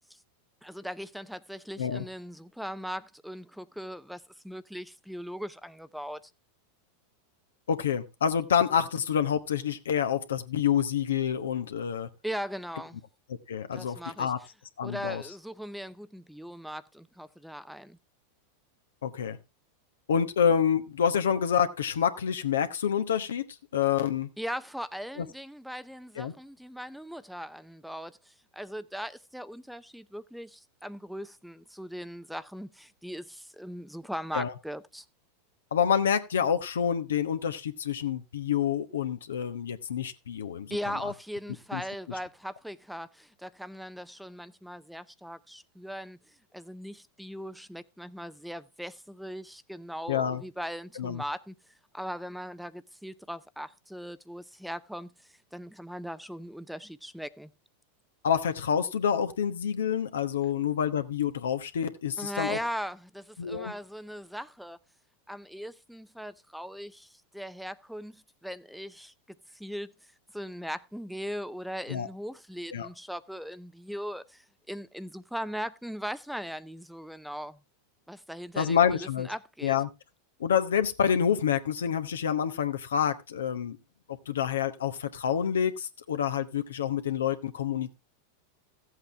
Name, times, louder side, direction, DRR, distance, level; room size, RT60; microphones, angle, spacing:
voice 1, 0.6-6.2 12.2-13.0 13.7-14.3 14.8-18.0 24.4-35.0 40.7-46.2 46.5-51.5 51.9-55.1 55.5-57.5 62.2-64.8 65.3-69.1 69.5-69.9 70.3-77.6 78.1-79.8, equal, ahead, 0.6 m, -39 dB
voice 2, 7.7-12.1 13.5-14.4 14.8-15.2 19.0-19.4 20.1-23.4 23.7-24.3 25.2-25.3 26.1-26.3 34.3-34.5 35.7-40.8 41.0-41.1 41.7-41.8 50.1-50.4 51.0-51.2 58.2-62.6 63.4-63.7 71.9-72.1 72.7-72.9 78.6-79.3 79.6-79.9 80.4-83.8 84.1-87.9, left 8 dB, 85° left, 1.1 m, -27 dB
14.5 x 8.0 x 3.4 m
hypercardioid pair, 100°, 0 cm